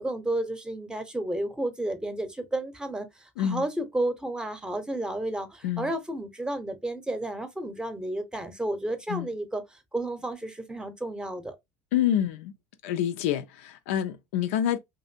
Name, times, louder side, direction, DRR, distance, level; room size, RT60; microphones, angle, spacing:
voice 1, 0.0-9.6 9.9-11.6, right 1 dB, 10° right, 0.7 m, -32 dB
voice 2, 11.9-12.5 12.8-14.8, left 10 dB, 75° left, 0.4 m, -27 dB
2.6 x 2.5 x 2.5 m
hypercardioid pair, 85°, 7 cm